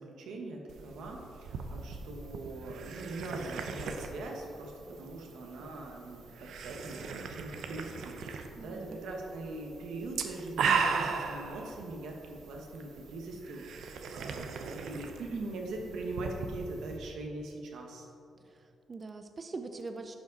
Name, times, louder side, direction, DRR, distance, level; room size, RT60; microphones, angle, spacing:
voice 1, 0.0-18.1, right 2 dB, 90° right, 1 dB, 1.3 m, -42 dB
sound 1, 0.7-17.0, right 5 dB, 70° right, 0.6 m, -38 dB
voice 2, 8.6-9.0 18.4-20.2, right 3 dB, 25° right, 6 dB, 0.3 m, -43 dB
11.0 x 5.2 x 4.0 m, 2.7 s
wide cardioid pair, 175°, 0 cm